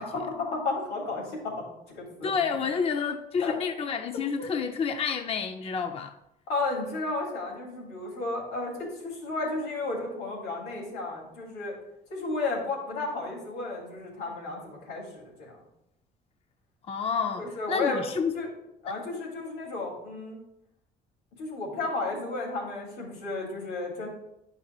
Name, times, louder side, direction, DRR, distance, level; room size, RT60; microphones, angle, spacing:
voice 1, 0.0-2.3 3.4-3.5 4.4-4.5 6.5-11.7 12.1-15.6 17.4-18.0 18.3-18.5 18.8-20.4 21.4-24.1, left 3 dB, 90° left, -2 dB, 3.0 m, -33 dB
voice 2, 2.2-6.1 16.8-18.3 18.9-19.0, left 6 dB, 35° left, 6 dB, 0.6 m, -29 dB
12.0 x 5.5 x 2.4 m, 0.82 s
cardioid pair, 110°, 17 cm